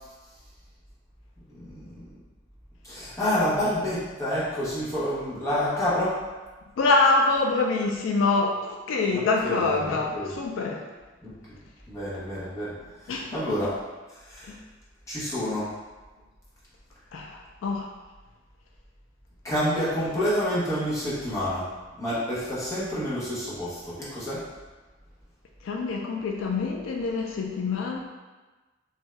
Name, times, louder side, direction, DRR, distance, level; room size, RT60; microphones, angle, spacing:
voice 1, 2.8-6.2 9.1-10.3 11.2-11.6 11.9-12.7 13.0-13.7 14.3-14.5 15.1-15.7 19.4-21.6 22.0-24.4, equal, 15° left, -9 dB, 0.8 m, -28 dB
voice 2, 6.8-10.8 13.1-13.6 14.5-14.6 17.1-17.9 25.6-28.0, left 3 dB, 85° left, 1 dB, 0.3 m, -25 dB
2.5 x 2.2 x 3.1 m, 1.2 s
head